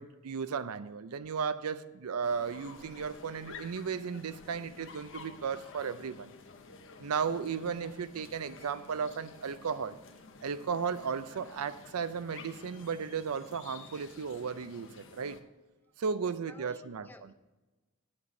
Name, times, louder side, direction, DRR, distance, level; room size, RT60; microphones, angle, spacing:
voice 1, 0.0-6.3 7.0-10.0 10.4-15.4 16.0-17.3, right 6 dB, 75° right, 0.5 m, -35 dB
sound 1, 2.2-15.4, left 4 dB, 60° left, 0.8 m, -51 dB
voice 2, 16.2-17.3, left 1 dB, 10° left, 0.5 m, -54 dB
8.7 x 8.0 x 5.2 m
head